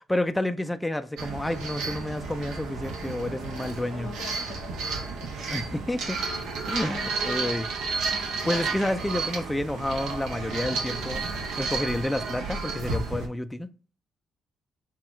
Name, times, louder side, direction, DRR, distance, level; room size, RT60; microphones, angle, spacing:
voice 1, 0.1-4.1 5.5-6.2 6.7-7.7 8.4-11.3 11.6-13.7, left 1 dB, 10° left, 0.3 m, -29 dB
sound 1, 1.2-13.3, right 4 dB, 85° right, 0.9 m, -32 dB
voice 2, 3.7-5.9 6.9-7.6, left 7 dB, 90° left, 1.0 m, -45 dB
5.9 x 2.3 x 3.6 m
cardioid pair, 90°, 0 cm